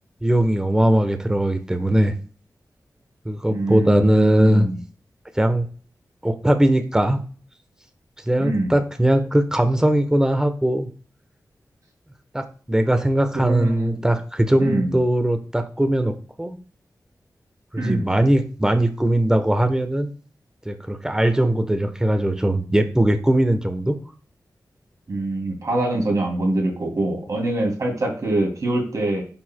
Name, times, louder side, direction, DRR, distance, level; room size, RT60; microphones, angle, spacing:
voice 1, 0.2-2.1 3.2-4.7 5.3-5.7 6.2-7.2 8.3-10.9 12.3-16.6 17.7-20.1 20.7-24.0, right 1 dB, 10° right, 7 dB, 0.9 m, -20 dB
voice 2, 3.5-4.8 8.4-8.8 13.3-14.0 14.6-14.9 17.8-18.1 25.1-29.2, right 2 dB, 60° right, 0 dB, 2.6 m, -24 dB
10.5 x 4.7 x 2.2 m, 0.40 s
wide cardioid pair, 100°, 7 cm